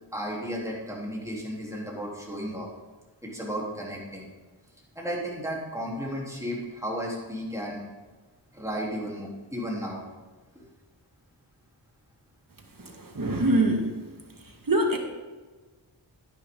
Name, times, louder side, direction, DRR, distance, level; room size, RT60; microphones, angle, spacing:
voice 1, 0.1-2.7 3.2-4.3 5.0-7.8 8.5-10.0, equal, 5° right, -3 dB, 3.6 m, -34 dB
voice 2, 12.8-13.9 14.4-15.0, right 1 dB, 50° right, 3 dB, 2.0 m, -25 dB
10.5 x 10.0 x 3.9 m, 1.3 s
wide cardioid pair, 50°, 44 cm